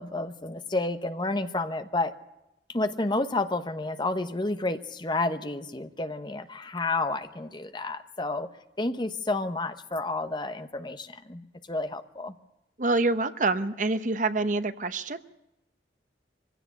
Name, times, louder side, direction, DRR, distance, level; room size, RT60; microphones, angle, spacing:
voice 1, 0.0-2.1 2.7-8.5 8.8-12.3, left 2 dB, 25° left, 9 dB, 1.0 m, -30 dB
voice 2, 12.8-15.2, right 3 dB, 45° right, 11 dB, 0.9 m, -26 dB
24.0 x 16.5 x 8.3 m, 0.92 s
head